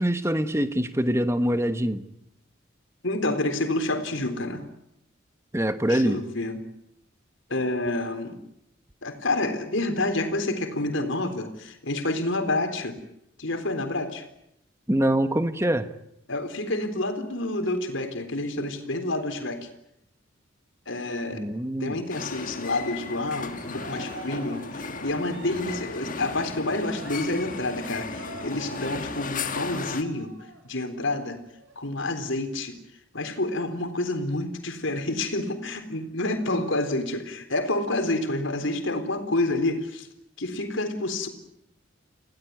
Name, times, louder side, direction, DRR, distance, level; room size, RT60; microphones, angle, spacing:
voice 1, 0.0-2.0 5.5-6.2 14.9-15.9 21.3-21.9, right 1 dB, 15° right, 1.3 m, -24 dB
voice 2, 3.0-4.6 5.9-6.6 7.5-8.4 9.0-13.0 13.4-14.3 16.3-19.7 20.9-21.5 21.8-30.3 30.6-31.4 31.8-32.8 33.1-40.1 40.4-41.3, left 2 dB, 70° left, 3.9 m, -28 dB
sound 1, 22.1-30.0, left 4 dB, 40° left, 1.7 m, -35 dB
Cheering, 22.6-30.6 31.0-31.2 31.5-32.5, right 2 dB, 75° right, 5.5 m, -46 dB
29.5 x 17.5 x 9.5 m
head